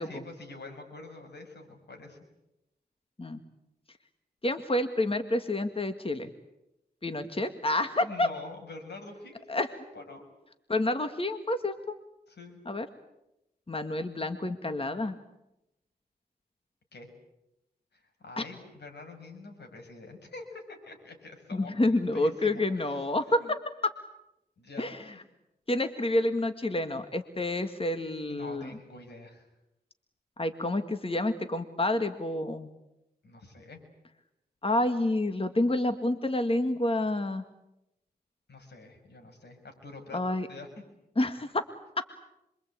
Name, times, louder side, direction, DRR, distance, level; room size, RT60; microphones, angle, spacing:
voice 1, 0.0-2.2 8.0-10.3 12.3-12.6 16.9-17.1 17.9-23.5 24.6-25.2 28.3-29.5 33.2-33.8 38.5-40.2 40.5-40.7, left 3 dB, 85° left, 4 dB, 6.2 m, -46 dB
voice 2, 4.4-6.3 7.0-8.3 9.5-9.7 10.7-11.9 12.7-12.9 13.7-15.1 18.4-18.5 21.5-23.9 24.8-25.0 25.7-28.7 30.4-32.7 34.6-37.4 40.1-40.5 41.2-41.6 42.0-42.1, left 1 dB, 35° left, 8 dB, 1.9 m, -28 dB
27.0 x 24.0 x 8.7 m, 0.90 s
cardioid pair, 55°, 17 cm